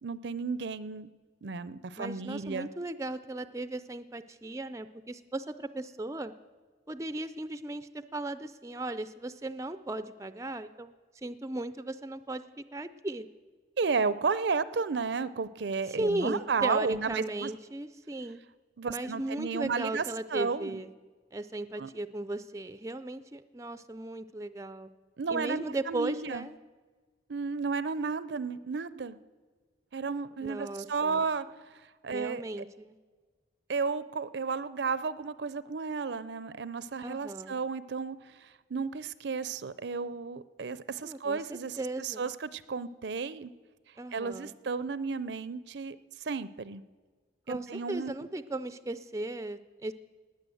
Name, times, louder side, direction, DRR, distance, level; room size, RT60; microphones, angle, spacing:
voice 1, 0.0-1.1 1.4-2.7 13.8-17.5 18.8-20.0 20.3-20.8 21.8-21.9 25.2-26.4 27.3-29.2 29.9-31.5 32.0-32.4 33.7-43.5 44.1-46.0 46.2-46.8 47.5-48.3, right 5 dB, 65° right, 16 dB, 0.5 m, -33 dB
voice 2, 2.0-6.3 6.9-13.3 15.9-18.4 18.9-20.9 21.3-24.9 25.3-26.6 30.4-31.2 32.1-33.0 37.0-37.6 41.0-42.3 44.0-44.5 47.5-49.9, right 2 dB, 15° right, 12 dB, 0.4 m, -36 dB
19.0 x 9.4 x 7.8 m, 1.4 s
head